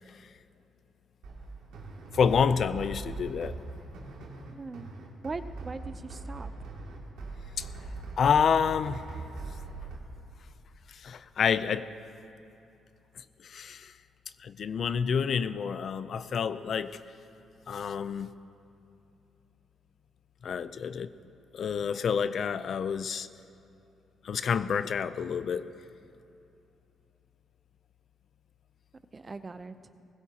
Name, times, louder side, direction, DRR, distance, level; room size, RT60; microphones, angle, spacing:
sound 1, 1.2-10.0, right 3 dB, 85° right, 2.4 m, -41 dB
voice 1, 2.1-3.6 7.6-7.7 8.2-9.0 10.9-11.9 13.2-13.9 14.4-17.0 17.7-18.3 20.4-21.1 21.5-23.3 24.2-25.7, left 6 dB, 55° left, 13 dB, 0.5 m, -28 dB
voice 2, 4.5-4.9 5.2-6.5 29.1-29.7, right 3 dB, 30° right, 12 dB, 0.6 m, -40 dB
20.0 x 16.0 x 2.9 m, 2.8 s
cardioid pair, 90°, 0 cm